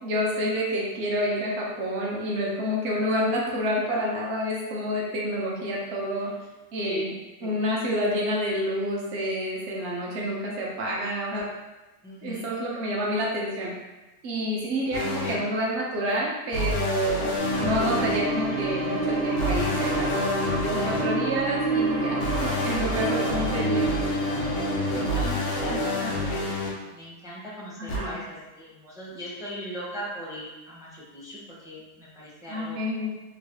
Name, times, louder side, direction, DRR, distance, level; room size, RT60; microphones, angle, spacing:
voice 1, 0.0-6.3 6.7-7.1 7.4-11.5 12.2-13.7 14.2-17.3 17.6-23.9 27.8-28.2 32.5-33.1, equal, 65° right, -3 dB, 1.0 m, -28 dB
voice 2, 6.8-7.1 7.4-7.6 12.0-12.5 15.0-15.5 20.6-21.0 24.9-26.5 26.9-32.8, equal, 5° right, -6 dB, 0.4 m, -39 dB
sound 1, 14.9-15.3 16.5-18.2 19.4-21.0 22.2-26.7 27.9-28.0, left 2 dB, 85° left, 1.0 m, -29 dB
sound 2, 17.4-26.2, right 2 dB, 40° right, 0.7 m, -28 dB
3.1 x 2.3 x 2.8 m, 1.1 s
omnidirectional pair, 1.3 m